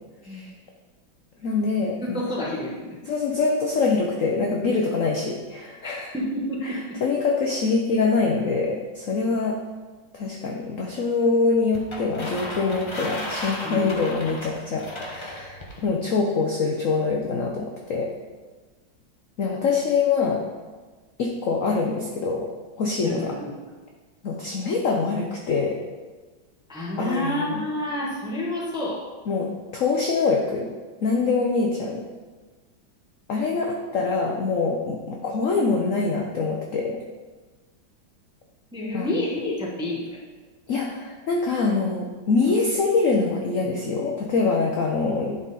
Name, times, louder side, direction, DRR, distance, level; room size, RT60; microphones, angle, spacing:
voice 1, 1.4-2.2 3.0-6.1 6.6-9.6 10.1-18.1 19.4-20.4 21.2-22.5 22.8-23.3 24.2-25.8 27.0-27.6 29.3-30.7 31.0-32.0 33.3-37.0 38.9-39.2 40.7-45.4, left 4 dB, 65° left, 0 dB, 0.8 m, -24 dB
voice 2, 2.0-2.9 5.8-6.8 13.6-13.8 23.0-23.5 26.7-29.0 38.7-40.0, left 1 dB, 5° right, -4 dB, 0.7 m, -29 dB
sound 1, 11.7-15.8, left 1 dB, 50° left, 0.3 m, -34 dB
9.8 x 3.8 x 4.2 m, 1.3 s
omnidirectional pair, 2.2 m